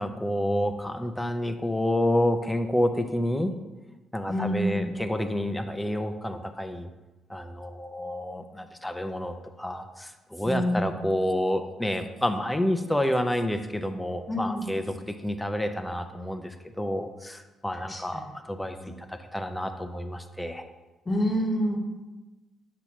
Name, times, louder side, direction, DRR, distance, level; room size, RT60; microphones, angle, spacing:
voice 1, 0.0-3.5 4.1-6.9 7.3-20.7, left 1 dB, 5° left, 7 dB, 0.6 m, -29 dB
voice 2, 4.3-4.8 10.5-10.9 14.3-14.7 17.9-18.2 18.8-19.0 21.1-21.8, equal, 25° left, 2 dB, 1.2 m, -27 dB
8.0 x 2.9 x 5.9 m, 1.1 s
cardioid pair, 90°, 0 cm